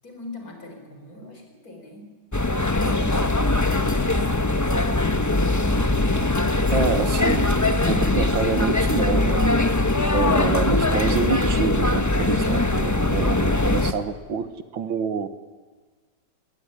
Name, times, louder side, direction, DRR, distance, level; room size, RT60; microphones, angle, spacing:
voice 1, 0.0-2.1 2.5-5.3, left 2 dB, 45° left, 4 dB, 5.0 m, -42 dB
sound 1, 2.3-13.9, left 2 dB, 15° left, 0.6 m, -21 dB
voice 2, 6.7-7.5 7.9-9.4 10.1-14.5 14.7-15.3, right 6 dB, 75° right, 10 dB, 2.0 m, -27 dB
21.0 x 18.5 x 9.9 m, 1.4 s
omnidirectional pair, 2.2 m